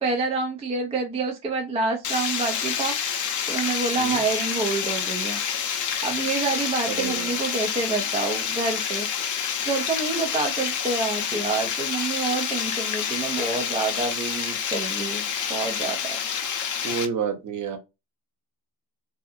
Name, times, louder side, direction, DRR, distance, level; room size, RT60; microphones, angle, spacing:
voice 1, 0.0-2.9 3.5-5.4 6.0-9.1 9.7-16.2, right 3 dB, 15° right, 0.3 m, -27 dB
Water, 2.0-17.1, left 8 dB, 40° left, 0.6 m, -28 dB
voice 2, 6.9-7.3 16.8-17.8, right 6 dB, 40° right, 0.7 m, -29 dB
2.7 x 2.4 x 2.4 m
cardioid pair, 105°, 49 cm